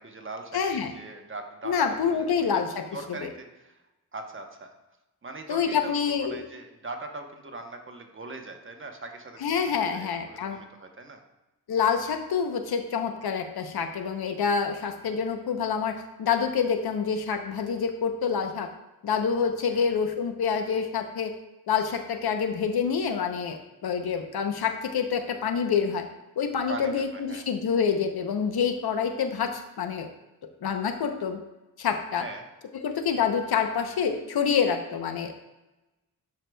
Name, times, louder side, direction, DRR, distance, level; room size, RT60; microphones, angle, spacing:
voice 1, 0.0-2.4 2.9-3.8 4.1-4.7 5.2-5.9 6.3-11.2 15.0-15.1 19.7-19.9 26.7-27.4 32.2-32.4 33.2-33.3, right 3 dB, 35° right, 4 dB, 0.9 m, -41 dB
voice 2, 0.5-0.9 1.6-2.8 3.1-3.3 5.5-6.5 9.4-10.6 11.7-18.7 19.0-21.3 21.7-26.1 26.4-30.1 30.6-31.4 31.8-32.3 32.7-35.3, left 6 dB, 80° left, 6 dB, 0.8 m, -27 dB
11.0 x 4.7 x 2.2 m, 1.0 s
wide cardioid pair, 90°, 37 cm